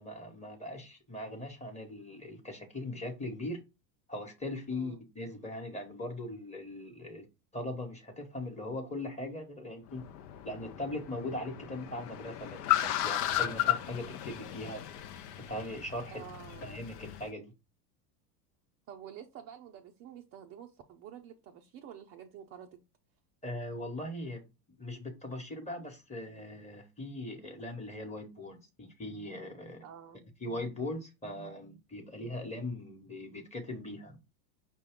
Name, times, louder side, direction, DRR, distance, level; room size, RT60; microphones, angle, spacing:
voice 1, 0.0-3.6 4.1-7.2 7.5-10.0 10.4-14.8 15.4-16.2 16.6-17.4 23.4-24.4 24.7-29.8 30.4-34.2, left 1 dB, 15° left, 1.1 m, -40 dB
voice 2, 4.7-5.0 16.1-16.7 18.9-22.8 29.8-30.3, right 9 dB, 30° right, 0.5 m, -49 dB
Car, 9.9-17.3, left 13 dB, 70° left, 0.7 m, -35 dB
5.5 x 2.3 x 3.5 m
hypercardioid pair, 100°, 49 cm